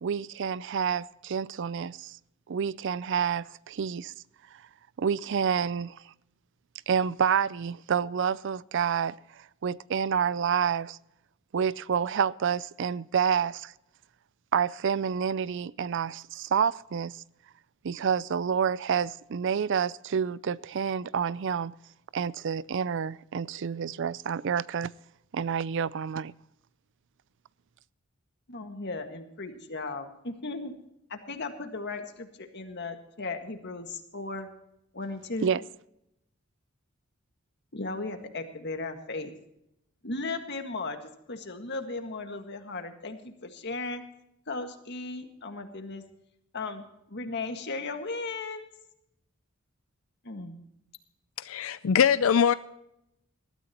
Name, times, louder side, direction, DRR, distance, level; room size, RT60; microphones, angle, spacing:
voice 1, 0.0-2.2 2.5-4.1 5.0-6.0 6.9-11.0 11.5-13.7 14.5-17.2 17.8-21.7 22.1-24.9 25.3-26.3 35.4-35.6, right 7 dB, 60° right, 0.4 m, -28 dB
voice 2, 28.5-30.7 31.1-34.5 34.9-35.5 37.7-39.3 40.0-44.0 44.5-46.0 46.5-48.7 50.2-50.6, left 3 dB, 55° left, 1.8 m, -36 dB
voice 3, 51.4-52.5, left 7 dB, 75° left, 0.5 m, -22 dB
20.0 x 13.5 x 2.9 m
head